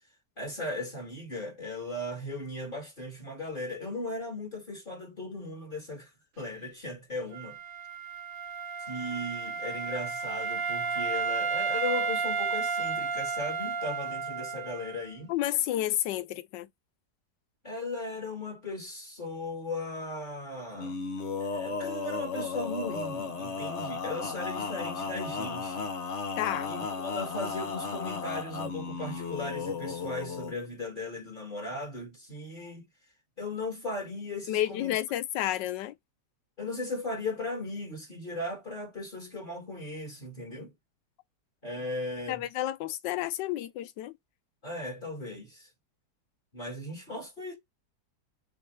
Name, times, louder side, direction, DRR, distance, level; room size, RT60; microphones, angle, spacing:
voice 1, 0.4-7.6 8.9-15.3 17.6-20.9 21.4-25.9 26.7-32.9 33.4-34.9 36.6-40.7 41.6-42.5 44.6-45.7 46.5-47.5, left 2 dB, 30° left, 1.7 m, -37 dB
Wind instrument woodwind instrument, 7.3-15.1, right 5 dB, 60° right, 1.0 m, -32 dB
voice 2, 15.3-16.7 26.4-26.7 34.5-35.9 42.3-44.2, left 13 dB, 85° left, 1.3 m, -30 dB
Male singing, 20.7-30.5, left 4 dB, 50° left, 1.0 m, -35 dB
6.4 x 2.5 x 3.2 m
omnidirectional pair, 1.9 m